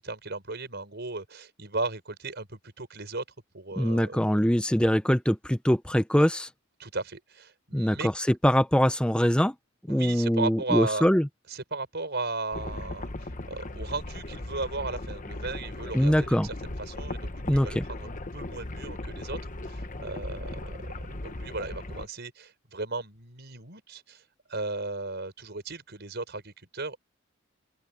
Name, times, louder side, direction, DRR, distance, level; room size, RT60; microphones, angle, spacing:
voice 1, 0.0-3.2 3.5-4.2 6.8-8.1 9.9-11.1 11.5-24.2 24.5-27.0, right 3 dB, 55° right, 5.5 m, -36 dB
voice 2, 3.8-6.5 7.7-9.5 9.9-11.3 15.9-16.5 17.5-17.8, equal, 5° left, 0.8 m, -23 dB
sound 1, 12.5-22.1, left 2 dB, 40° left, 1.2 m, -37 dB
open air
head